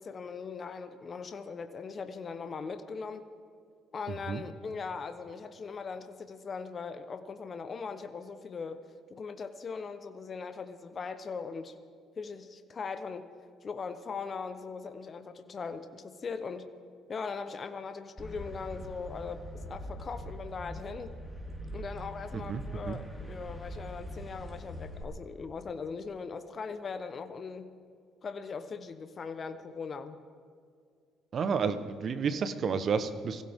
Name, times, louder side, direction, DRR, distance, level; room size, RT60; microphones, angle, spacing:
voice 1, 0.0-3.2 3.9-8.8 9.1-11.7 12.2-13.3 13.6-16.7 17.1-21.1 21.7-27.7 28.2-30.2, left 5 dB, 45° left, 10 dB, 1.0 m, -40 dB
sound 1, 18.2-25.0, equal, 5° right, 4.4 m, -42 dB
voice 2, 22.3-23.0 31.3-33.4, right 5 dB, 55° right, 12 dB, 1.0 m, -31 dB
22.5 x 16.0 x 3.7 m, 2.2 s
hypercardioid pair, 60°, 0 cm